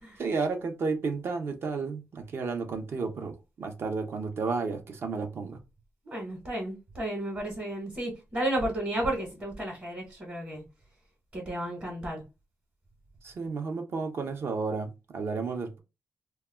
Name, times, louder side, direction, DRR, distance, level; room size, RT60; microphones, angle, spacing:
voice 1, 0.2-5.6 13.2-15.8, right 4 dB, 50° right, 0.5 m, -32 dB
voice 2, 6.0-10.6 11.3-12.2, right 1 dB, 25° right, 0.9 m, -33 dB
2.2 x 2.1 x 3.2 m
wide cardioid pair, 140°, 5 cm